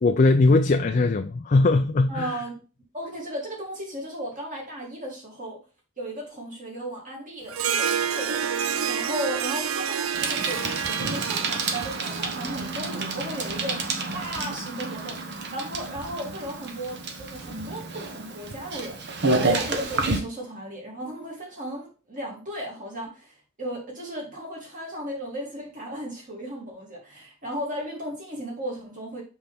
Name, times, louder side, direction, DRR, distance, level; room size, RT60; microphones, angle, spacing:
voice 1, 0.0-2.3, left 3 dB, 35° left, 0.4 m, -20 dB
voice 2, 2.1-2.6 2.9-5.6 6.0-19.0 19.3-29.2, right 1 dB, 40° right, 2.9 m, -35 dB
Harp, 7.5-13.2, right 7 dB, 75° right, 0.5 m, -29 dB
Bicycle, 10.1-20.2, right 3 dB, 55° right, 1.1 m, -29 dB
5.9 x 5.7 x 3.5 m
head